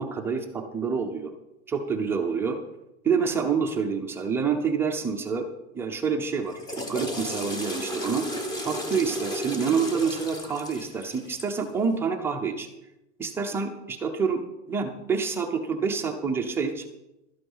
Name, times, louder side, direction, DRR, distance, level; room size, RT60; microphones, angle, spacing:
voice 1, 0.0-1.3 1.7-2.6 3.0-5.5 5.7-8.2 8.6-12.7 13.2-14.4 14.7-16.8, right 5 dB, 5° right, 3 dB, 0.5 m, -27 dB
Water / Toilet flush, 6.4-11.6, equal, 10° left, 1.0 m, -34 dB
12.5 x 8.9 x 5.5 m, 0.94 s
supercardioid pair, 170°, 36 cm